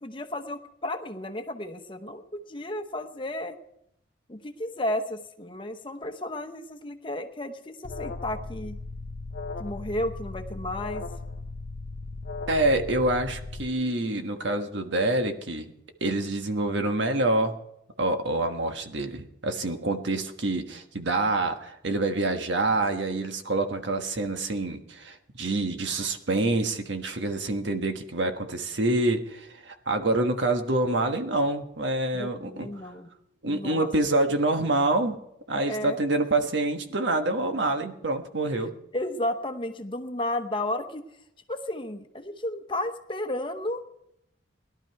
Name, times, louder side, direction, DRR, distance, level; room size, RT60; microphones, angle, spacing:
voice 1, 0.0-3.6 4.3-8.8 9.6-11.1 32.1-33.1 33.5-33.9 35.7-36.0 38.9-41.0 41.5-43.8, left 1 dB, 25° left, 7 dB, 0.9 m, -33 dB
Alarm, 7.8-13.7, left 3 dB, 55° left, 0.7 m, -37 dB
voice 2, 12.5-15.7 16.0-17.6 18.0-32.7 33.4-35.2 35.5-38.7, right 2 dB, 70° right, 6 dB, 1.4 m, -26 dB
18.5 x 11.5 x 4.6 m, 0.78 s
head